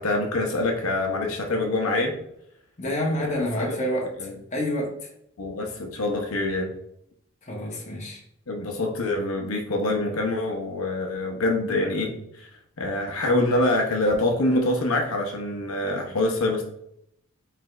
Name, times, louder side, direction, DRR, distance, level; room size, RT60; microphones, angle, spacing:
voice 1, 0.0-2.2 3.2-3.8 4.2-4.4 5.4-6.7 8.5-12.5 12.8-16.6, left 2 dB, 75° left, 0.8 m, -25 dB
voice 2, 2.8-4.1 4.5-5.0 7.4-8.2, equal, 30° left, 0.9 m, -28 dB
4.8 x 3.3 x 2.4 m
head